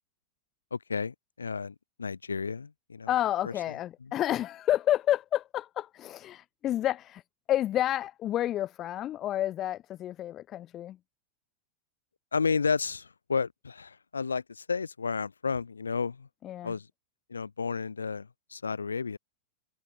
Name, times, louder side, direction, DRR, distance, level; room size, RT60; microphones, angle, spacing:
voice 1, 0.7-3.1 3.4-3.8 4.0-4.1 12.3-16.3 16.6-16.9 17.3-19.2, left 5 dB, 75° left, 5.6 m, -32 dB
voice 2, 3.1-7.2 7.5-11.0 16.4-16.7, left 12 dB, 30° left, 1.2 m, -30 dB
figure-of-eight pair, 90°, 0 cm